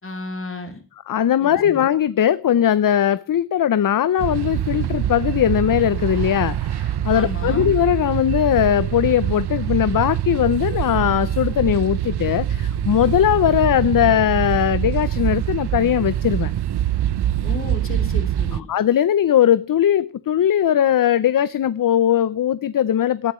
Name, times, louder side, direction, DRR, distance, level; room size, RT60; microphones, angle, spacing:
voice 1, 0.0-0.8 1.4-1.8 7.1-7.7 17.4-18.7, left 3 dB, 35° left, 3.4 m, -33 dB
voice 2, 1.1-16.5 18.7-23.3, left 10 dB, 60° left, 0.6 m, -19 dB
sound 1, 4.2-18.6, right 11 dB, 85° right, 0.7 m, -24 dB
18.5 x 9.9 x 3.1 m
wide cardioid pair, 140°, 38 cm